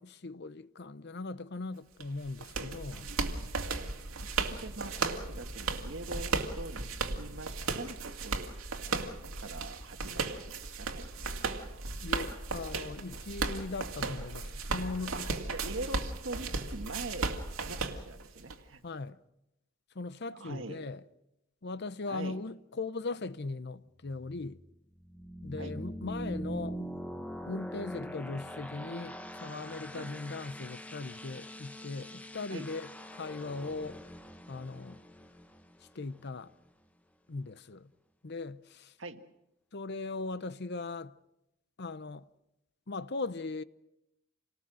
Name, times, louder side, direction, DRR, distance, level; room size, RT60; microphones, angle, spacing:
voice 1, 0.0-3.1 12.0-15.3 18.8-19.2 19.9-21.0 21.6-24.6 25.4-26.9 27.5-34.0 34.5-35.0 35.9-36.5 37.3-37.9 38.2-38.9 39.7-41.1 41.8-42.2 42.9-43.6, left 3 dB, 50° left, 0.7 m, -39 dB
sound 1, 2.0-18.6, right 3 dB, 80° right, 2.3 m, -36 dB
voice 2, 4.4-8.5 8.9-11.5 15.1-15.2 15.5-17.3 17.7-18.8 20.3-20.9 22.1-22.4 25.6-25.8 29.9-30.1 32.5-32.7 39.0-39.2, right 2 dB, 60° right, 1.6 m, -43 dB
sound 2, 24.1-36.7, equal, 5° left, 0.9 m, -43 dB
28.5 x 19.0 x 6.3 m
head